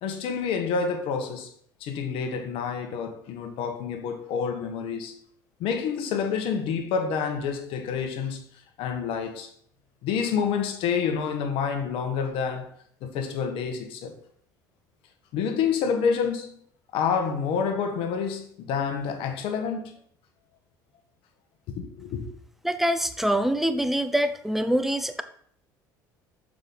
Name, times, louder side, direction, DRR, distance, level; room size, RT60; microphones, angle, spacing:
voice 1, 0.0-1.5 1.8-5.1 5.6-8.5 8.8-9.5 10.0-12.7 13.0-14.1 15.3-16.6 16.9-20.0 21.7-22.2, left 6 dB, 60° left, 1.1 m, -28 dB
voice 2, 22.6-25.2, right 1 dB, ahead, 0.6 m, -25 dB
6.6 x 4.9 x 3.9 m
hypercardioid pair, 60°, 11 cm